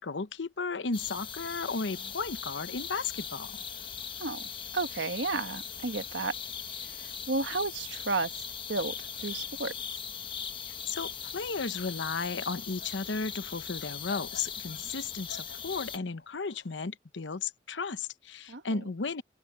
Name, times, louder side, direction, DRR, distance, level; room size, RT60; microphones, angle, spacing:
voice 1, 0.0-3.6 10.9-19.2, left 4 dB, 90° left, 0.9 m, -34 dB
sound 1, 0.9-16.0, left 7 dB, 25° left, 1.3 m, -40 dB
sound 2, 1.2-16.9, left 4 dB, 70° left, 6.4 m, -56 dB
voice 2, 4.7-6.3 6.8-8.3 8.7-9.7 14.7-14.8 18.5-18.8, right 3 dB, 80° right, 1.3 m, -33 dB
open air
head